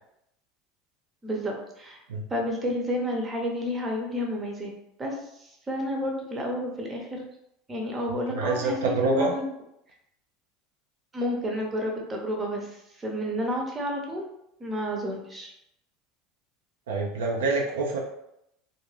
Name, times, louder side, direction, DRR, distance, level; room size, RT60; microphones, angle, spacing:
voice 1, 1.2-2.0 2.3-4.7 5.0-7.3 7.7-9.5 11.1-14.3 14.6-15.5, equal, 25° right, 0 dB, 0.8 m, -30 dB
voice 2, 8.1-9.3 16.9-18.0, right 3 dB, 85° right, 0 dB, 0.4 m, -26 dB
2.5 x 2.1 x 3.2 m, 0.80 s
hypercardioid pair, 85°, 0 cm